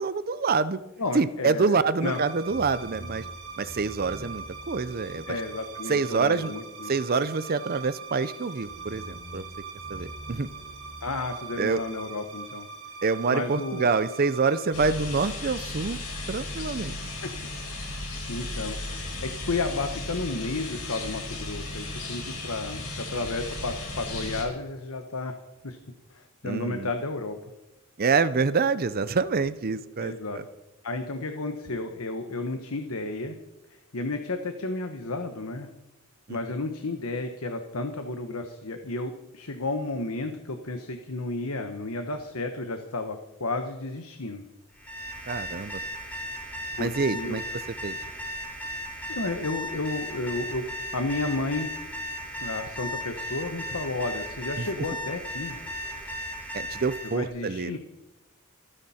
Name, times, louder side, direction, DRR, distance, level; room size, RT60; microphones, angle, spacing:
voice 1, 0.0-0.8 1.1-3.3 3.6-5.4 5.9-6.5 6.9-9.4 9.9-10.5 11.6-11.8 13.0-16.0 16.3-17.0 26.4-26.9 28.0-30.4 36.3-36.4 45.3-45.8 46.8-47.4 47.8-48.0 54.6-54.7 56.5-57.8, right 4 dB, 45° right, 15 dB, 0.6 m, -26 dB
voice 2, 1.0-2.2 5.3-6.9 11.0-12.7 13.3-13.9 14.8-14.9 16.6-16.7 17.2-17.3 17.8-17.9 18.3-25.4 25.6-25.8 26.1-27.5 30.0-30.4 30.8-33.3 33.9-35.7 36.3-44.5 46.8-47.4 48.7-50.7 50.9-51.7 52.4-55.6 57.0-57.8, left 2 dB, 75° left, 6 dB, 1.2 m, -32 dB
sound 1, 2.0-15.7, right 4 dB, 80° right, 3.5 m, -41 dB
sound 2, 14.7-24.4, left 2 dB, 90° left, 4.9 m, -35 dB
Alarm, 44.7-57.2, equal, 5° left, 3.9 m, -36 dB
29.0 x 10.0 x 4.3 m, 0.97 s
head